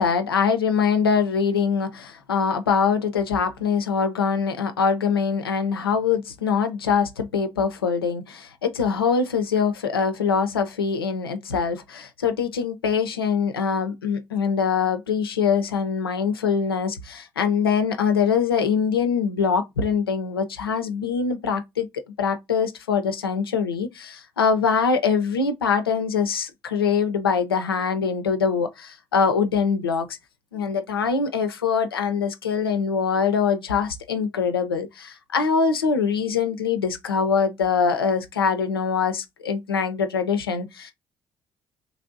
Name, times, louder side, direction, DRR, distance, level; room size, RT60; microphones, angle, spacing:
voice 1, 0.0-21.9 22.2-30.2 30.5-40.9, left 6 dB, 85° left, 0.4 m, -23 dB
3.1 x 2.5 x 2.5 m
figure-of-eight pair, 45°, 12 cm